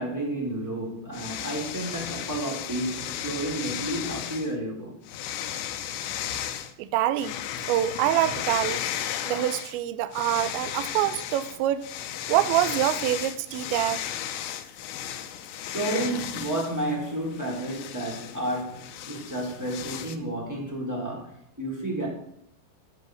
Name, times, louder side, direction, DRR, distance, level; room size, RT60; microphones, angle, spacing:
voice 1, 0.0-5.0 15.3-15.4 15.7-22.1, right 1 dB, 5° right, 2.6 m, -31 dB
sound 1, 1.1-4.5 5.1-6.7 7.2-9.8 10.1-20.2, left 11 dB, 80° left, 2.7 m, -35 dB
voice 2, 6.8-7.3 7.7-8.8 9.3-11.9 12.3-14.1, right 13 dB, 80° right, 2.8 m, -25 dB
13.5 x 7.9 x 6.4 m
omnidirectional pair, 5.7 m